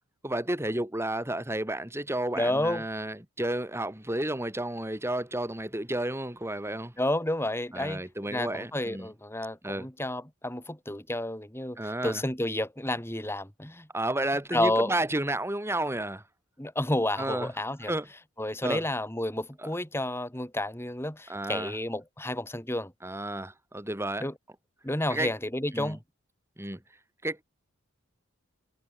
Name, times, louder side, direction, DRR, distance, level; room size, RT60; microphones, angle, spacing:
voice 1, 0.2-6.9 7.7-9.1 9.6-9.9 11.8-12.2 13.9-16.2 17.2-17.5 17.8-18.1 18.6-18.8 19.6-19.7 21.3-21.7 23.0-24.3 25.1-25.3 25.7-26.0 26.6-26.8 27.2-27.4, right 1 dB, 10° right, 3.4 m, -31 dB
voice 2, 2.4-2.8 7.0-8.0 8.3-13.9 14.5-14.9 16.6-17.9 18.4-22.9 24.2-24.3 24.8-26.0, left 1 dB, 10° left, 3.8 m, -30 dB
head